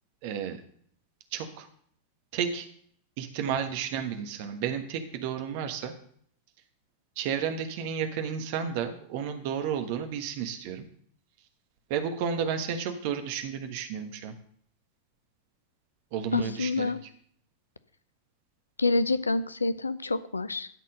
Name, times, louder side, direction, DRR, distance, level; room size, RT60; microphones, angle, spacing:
voice 1, 0.2-0.6 1.3-1.7 2.3-2.7 3.2-5.9 7.2-10.8 11.9-14.3 16.1-16.9, right 7 dB, 45° right, 6 dB, 1.3 m, -32 dB
voice 2, 16.3-17.0 18.8-20.7, left 2 dB, 80° left, 15 dB, 0.4 m, -27 dB
12.5 x 4.4 x 6.4 m, 0.62 s
figure-of-eight pair, 90°, 0 cm